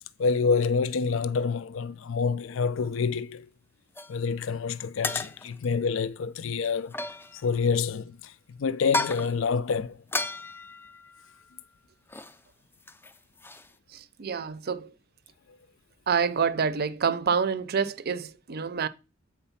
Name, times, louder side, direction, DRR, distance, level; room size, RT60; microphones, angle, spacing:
voice 1, 0.2-3.5 4.1-6.9 7.3-8.3 8.6-10.0, left 5 dB, 65° left, 0.4 m, -27 dB
sound 1, 4.0-4.2 5.0-5.7 6.8-7.6 8.8-9.4 10.1-11.6 12.1-12.4 12.6-13.7, left 2 dB, 10° left, 0.4 m, -34 dB
voice 2, 13.9-14.9 16.1-18.9, right 6 dB, 50° right, 0.6 m, -27 dB
8.0 x 4.3 x 5.7 m
head